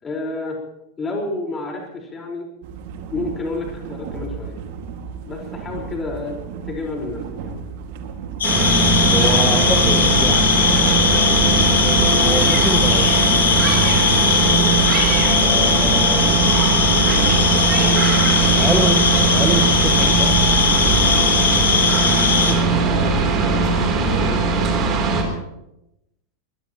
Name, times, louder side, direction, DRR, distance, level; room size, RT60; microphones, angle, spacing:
voice 1, 0.0-0.6 1.0-2.5 3.1-4.6 5.3-6.4 6.7-7.6 22.5-24.5, left 2 dB, 20° left, 0 dB, 4.5 m, -30 dB
sound 1, 2.6-21.3, right 6 dB, 50° right, 2.0 m, -34 dB
Night Crickets-Hi Frequency, 8.4-22.5, left 6 dB, 65° left, 2.1 m, -19 dB
sound 2, 8.4-25.2, right 4 dB, 30° right, 3.3 m, -19 dB
voice 2, 9.1-11.0 11.8-13.1 15.3-16.3 18.6-19.0 19.3-20.3, right 1 dB, 5° right, 6 dB, 1.9 m, -26 dB
23.5 x 20.0 x 3.0 m, 0.89 s
figure-of-eight pair, 90°, 0 cm